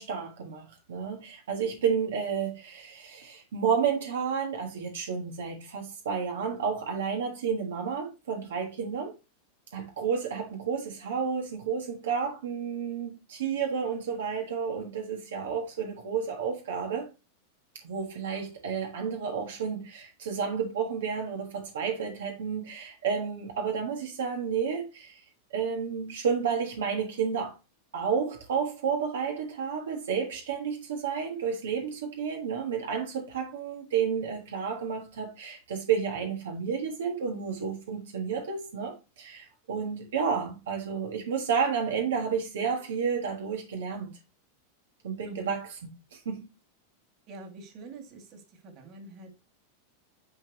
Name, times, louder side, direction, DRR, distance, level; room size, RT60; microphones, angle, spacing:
voice 1, 0.0-9.1 9.7-17.1 17.8-25.2 25.5-27.6 27.9-44.1 45.0-45.8 46.1-46.5, right 6 dB, 85° right, 1.5 m, -31 dB
voice 2, 47.3-49.4, right 3 dB, 40° right, 2.2 m, -46 dB
9.9 x 3.4 x 3.0 m
supercardioid pair, 130°, 0 cm